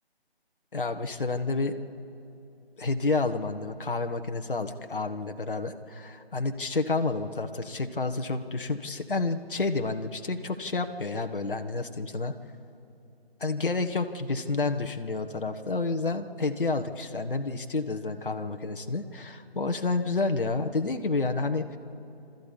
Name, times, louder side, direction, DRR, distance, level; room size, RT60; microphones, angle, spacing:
voice 1, 0.7-1.7 2.8-12.3 13.4-21.8, left 3 dB, 55° left, 7 dB, 1.3 m, -29 dB
26.0 x 13.5 x 8.5 m, 2.8 s
figure-of-eight pair, 155°, 31 cm